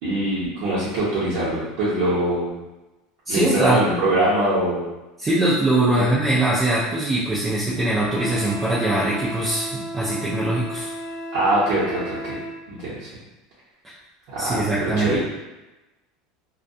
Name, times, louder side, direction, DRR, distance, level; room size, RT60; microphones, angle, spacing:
voice 1, 0.0-2.5 3.3-4.8 6.0-6.1 11.3-12.4 12.7-13.1 14.3-15.2, right 1 dB, 55° right, -10 dB, 0.8 m, -23 dB
voice 2, 3.3-3.8 5.2-10.9 13.8-13.9 14.4-15.2, right 2 dB, 15° right, -8 dB, 0.4 m, -22 dB
Wind instrument woodwind instrument, 8.1-12.6, right 1 dB, 60° left, 0.5 m, -33 dB
2.2 x 2.1 x 2.6 m, 1.1 s
supercardioid pair, 160°, 0 cm